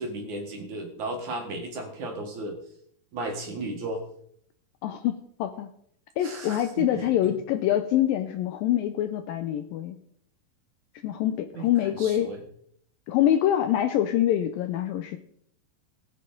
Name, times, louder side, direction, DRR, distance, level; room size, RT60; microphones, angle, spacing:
voice 1, 0.0-2.6 3.1-4.0 6.2-7.3 11.6-11.7 12.0-12.4, right 2 dB, 55° right, 2 dB, 2.6 m, -35 dB
voice 2, 4.8-5.7 6.2-10.0 11.0-12.3 13.1-15.2, left 11 dB, 80° left, 8 dB, 2.1 m, -25 dB
20.0 x 7.6 x 3.8 m, 0.67 s
omnidirectional pair, 4.6 m